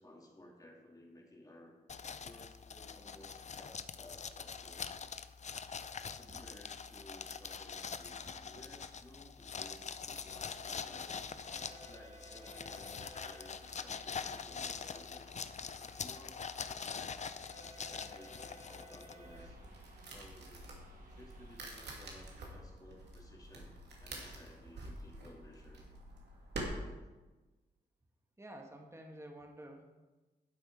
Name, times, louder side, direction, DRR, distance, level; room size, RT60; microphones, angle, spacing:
voice 1, 0.0-1.8 2.2-4.9 6.1-11.4 11.6-15.3 15.8-17.2 17.6-19.6 20.1-20.7 21.2-23.7 24.0-25.8, left 1 dB, 20° left, -1 dB, 2.7 m, -57 dB
sound 1, 1.9-19.4, left 6 dB, 40° left, 0.5 m, -44 dB
sound 2, 11.1-22.5, right 1 dB, 50° right, 2.6 m, -58 dB
sound 3, 19.2-26.6, right 2 dB, 80° right, 2.4 m, -48 dB
voice 2, 28.4-29.8, right 1 dB, 15° right, 2 dB, 1.6 m, -50 dB
11.5 x 7.9 x 4.7 m, 1.2 s
cardioid pair, 70°, 17 cm